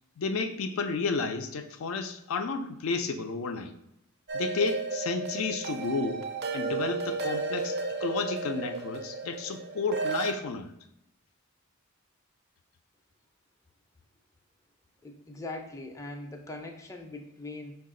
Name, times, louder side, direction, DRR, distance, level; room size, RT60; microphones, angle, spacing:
voice 1, 0.2-3.7 4.3-6.3 6.5-10.7, left 4 dB, 75° left, 7 dB, 0.4 m, -32 dB
sound 1, 4.3-10.3, right 3 dB, 50° right, 0.4 m, -33 dB
voice 2, 15.0-17.7, left 2 dB, 15° left, 3 dB, 0.4 m, -41 dB
5.6 x 2.3 x 3.6 m, 0.83 s
head